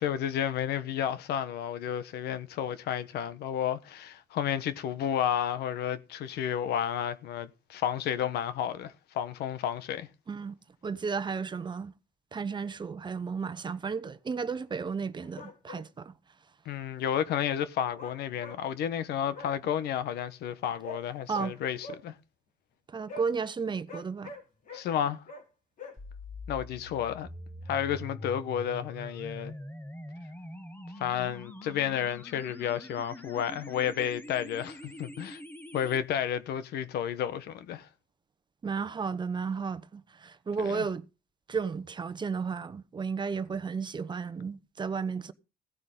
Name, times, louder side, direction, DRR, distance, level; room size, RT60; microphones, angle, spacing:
voice 1, 0.0-10.1 16.6-22.1 24.7-25.2 26.5-27.3 27.7-29.5 31.0-35.4 35.7-37.9 40.6-40.9, left 9 dB, 75° left, 1.2 m, -31 dB
voice 2, 10.8-11.9 12.3-16.1 21.3-21.5 22.9-24.3 38.6-41.0 41.5-45.3, right 5 dB, 25° right, 1.0 m, -33 dB
sound 1, 15.2-15.8 18.0-18.6 19.3-19.5 20.8-21.0 21.3-21.5 21.8-22.0 23.1-23.3 23.9-24.8 25.3-25.4 25.8-26.0, left 2 dB, 55° left, 4.0 m, -43 dB
sound 2, 26.0-36.0, left 1 dB, 10° left, 1.5 m, -44 dB
16.5 x 9.5 x 3.8 m
cardioid pair, 110°, 17 cm